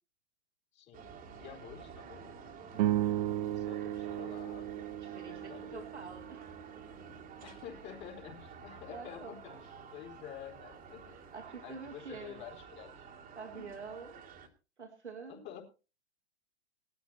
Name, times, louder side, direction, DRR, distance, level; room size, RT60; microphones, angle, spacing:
voice 1, 0.7-2.9 3.5-5.0 5.3-5.9 7.4-9.6 9.9-11.0 11.6-13.1 13.5-13.6 15.3-15.6, left 10 dB, 30° left, 1 dB, 3.9 m, -49 dB
sound 1, 0.9-14.5, right 6 dB, 25° right, 2.4 m, -51 dB
sound 2, 2.7-7.3, right 13 dB, 40° right, 0.7 m, -35 dB
voice 2, 5.0-6.4 8.9-9.6 11.1-12.4 13.3-14.2 14.8-15.5, right 5 dB, 80° right, 1 dB, 3.3 m, -47 dB
19.0 x 13.5 x 2.8 m, 0.32 s
figure-of-eight pair, 105°, 34 cm